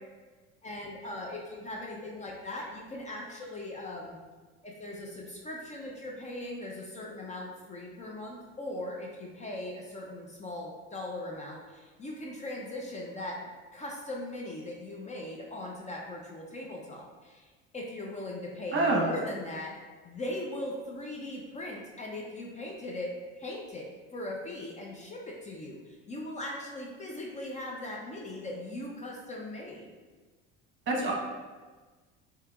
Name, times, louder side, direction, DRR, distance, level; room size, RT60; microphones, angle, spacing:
voice 1, 0.6-4.2 4.6-13.4 13.7-19.7 20.0-23.1 23.4-29.9, left 1 dB, 25° left, -1 dB, 0.5 m, -39 dB
voice 2, 18.7-19.1 30.9-31.1, right 2 dB, 40° right, -1 dB, 1.0 m, -26 dB
4.9 x 2.8 x 2.3 m, 1.3 s
supercardioid pair, 105°, 30 cm